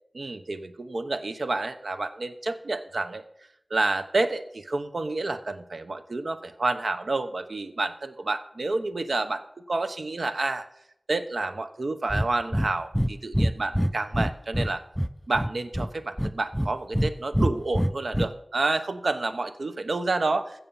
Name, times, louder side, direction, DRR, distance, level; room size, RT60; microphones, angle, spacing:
voice 1, 0.1-3.2 3.7-10.7 11.1-14.8 15.3-20.6, right 2 dB, 80° right, 9 dB, 0.8 m, -29 dB
Breathing, 12.1-12.3 12.5-12.7 12.9-13.1 13.3-14.7 15.0-15.9 16.2-17.1 17.3-18.3, equal, ahead, 0.5 m, -24 dB
15.5 x 6.9 x 5.5 m, 0.76 s
wide cardioid pair, 60°, 0 cm